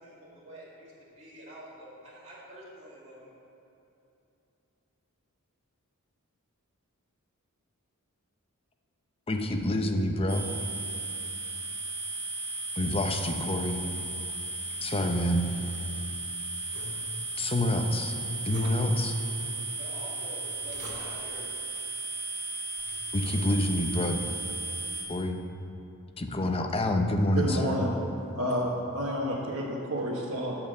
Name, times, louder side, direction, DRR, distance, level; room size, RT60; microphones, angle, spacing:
voice 1, 0.0-3.3 19.8-21.5, right 1 dB, 30° right, -9 dB, 2.4 m, -47 dB
voice 2, 9.3-10.5 12.8-13.8 14.8-15.5 17.4-18.2 18.4-19.2 23.1-24.2 25.1-25.4 26.2-27.8, left 1 dB, 25° left, 4 dB, 0.7 m, -27 dB
sound 1, 10.3-25.0, right 2 dB, 10° right, 2.3 m, -36 dB
sound 2, 14.7-16.1 16.5-17.4 18.3-19.1 20.3-21.3 22.1-22.2 22.6-24.0, equal, 50° right, 2.1 m, -46 dB
voice 3, 27.3-27.9 28.3-30.6, equal, 75° right, -5 dB, 1.4 m, -30 dB
8.8 x 5.8 x 7.7 m, 2.8 s
head